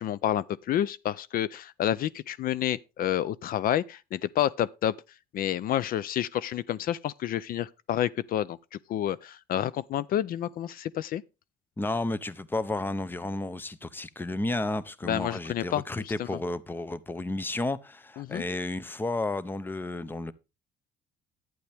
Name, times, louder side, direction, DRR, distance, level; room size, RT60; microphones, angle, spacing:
voice 1, 0.0-4.9 5.3-11.2 15.0-16.4 18.2-18.4, left 11 dB, 60° left, 0.5 m, -29 dB
voice 2, 11.8-20.3, left 2 dB, 10° left, 0.7 m, -32 dB
11.5 x 9.3 x 3.4 m
cardioid pair, 110°, 17 cm